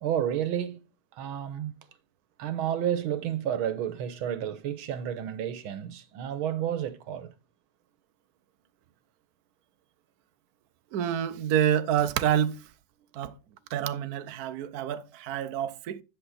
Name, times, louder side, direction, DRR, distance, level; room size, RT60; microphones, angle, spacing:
voice 1, 0.0-0.8 1.2-1.7 2.4-7.3, right 10 dB, 80° right, 1.8 m, -31 dB
voice 2, 10.9-12.6 13.1-13.3 13.7-16.0, right 10 dB, 60° right, 1.0 m, -27 dB
10.5 x 6.9 x 4.1 m
omnidirectional pair, 2.2 m